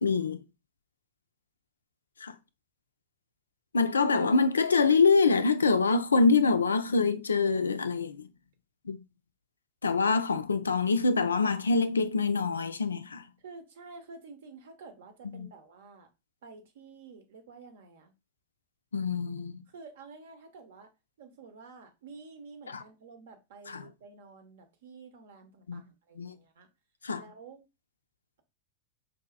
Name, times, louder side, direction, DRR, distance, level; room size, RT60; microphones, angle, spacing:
voice 1, 0.0-0.4 2.2-2.3 3.7-8.3 8.9-9.0 9.8-13.2 15.3-15.5 18.9-19.6 22.7-22.8 23.7-23.9 25.7-25.9 26.2-26.4 27.0-27.2, left 4 dB, 75° left, 0.3 m, -25 dB
voice 2, 13.4-16.1 16.4-18.1 19.7-20.9 21.2-26.7 27.2-27.6, right 4 dB, 60° right, 0.8 m, -50 dB
4.8 x 2.7 x 2.3 m
figure-of-eight pair, 90°, 0 cm